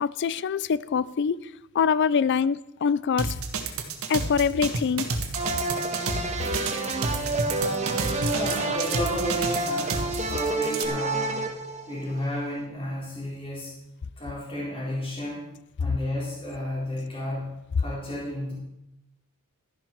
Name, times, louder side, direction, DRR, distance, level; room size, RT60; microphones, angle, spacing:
voice 1, 0.0-1.4 1.7-3.4 4.1-5.2, left 6 dB, 50° left, 0.4 m, -24 dB
sound 1, 3.2-10.9, right 4 dB, 70° right, 1.5 m, -30 dB
sound 2, 5.3-12.4, right 2 dB, 30° right, 1.4 m, -29 dB
voice 2, 7.3-11.5 11.9-13.8 14.2-15.5 15.8-18.5, left 1 dB, 25° left, 4.1 m, -33 dB
13.0 x 10.5 x 4.6 m
head